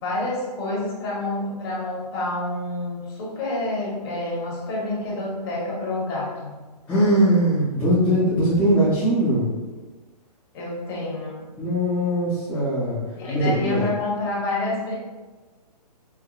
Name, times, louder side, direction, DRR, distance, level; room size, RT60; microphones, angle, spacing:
voice 1, 0.0-6.5 10.5-11.5 13.2-14.9, left 2 dB, 35° left, -5 dB, 1.1 m, -28 dB
voice 2, 6.9-9.5 11.6-13.0 13.3-13.9, right 1 dB, 5° left, -11 dB, 0.5 m, -20 dB
4.7 x 2.1 x 2.3 m, 1.3 s
hypercardioid pair, 145°, 21 cm